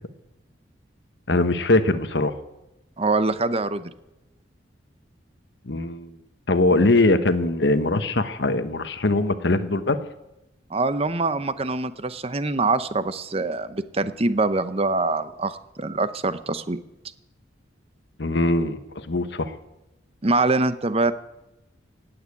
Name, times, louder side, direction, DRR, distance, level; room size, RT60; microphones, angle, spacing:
voice 1, 1.3-2.3 5.7-6.1 6.5-10.0 18.2-19.5, left 2 dB, 65° left, 10 dB, 1.1 m, -21 dB
voice 2, 3.0-3.9 10.7-16.8 20.2-21.1, right 3 dB, 30° right, 12 dB, 0.8 m, -24 dB
18.0 x 8.8 x 8.5 m, 0.94 s
head